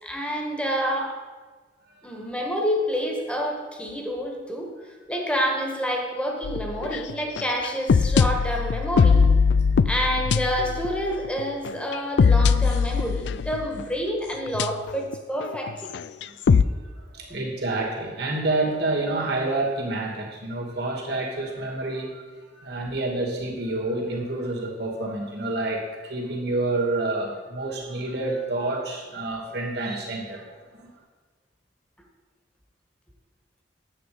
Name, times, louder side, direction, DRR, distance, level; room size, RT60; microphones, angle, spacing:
voice 1, 0.0-1.2 2.0-4.7 5.1-9.2 9.8-15.7, equal, 5° left, 1 dB, 1.7 m, -28 dB
sound 1, 6.4-13.8 14.5-15.1 15.4-16.6, left 5 dB, 70° left, 0.4 m, -21 dB
voice 2, 17.1-22.2 22.5-30.9, right 2 dB, 65° right, -2 dB, 2.6 m, -28 dB
10.0 x 8.3 x 5.2 m, 1.4 s
head